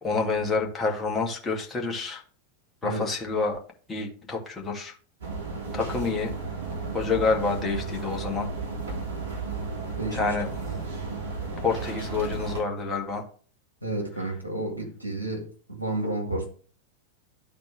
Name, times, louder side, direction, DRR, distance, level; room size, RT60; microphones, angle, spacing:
voice 1, 0.0-2.2 2.8-3.6 3.9-4.9 5.7-6.3 6.9-8.5 10.1-10.5 11.6-13.2, left 4 dB, 15° left, 1.7 m, -28 dB
sound 1, 5.2-12.6, right 4 dB, 60° right, 2.5 m, -33 dB
voice 2, 10.0-10.3 13.8-16.5, right 2 dB, 85° right, 1.9 m, -31 dB
12.0 x 4.1 x 3.3 m
figure-of-eight pair, 90°, 0 cm